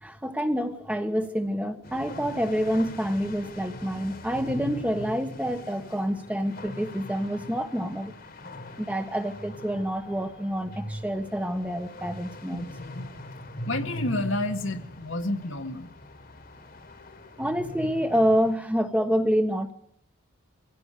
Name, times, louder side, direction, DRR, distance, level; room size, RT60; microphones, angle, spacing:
voice 1, 0.0-8.1 8.8-12.7 17.4-19.7, equal, 5° right, 7 dB, 1.3 m, -27 dB
sound 1, 1.8-18.5, left 1 dB, 40° left, 2.0 m, -41 dB
voice 2, 12.5-13.1 13.7-15.9, left 2 dB, 60° left, 7 dB, 1.9 m, -30 dB
24.5 x 16.0 x 6.8 m, 0.69 s
head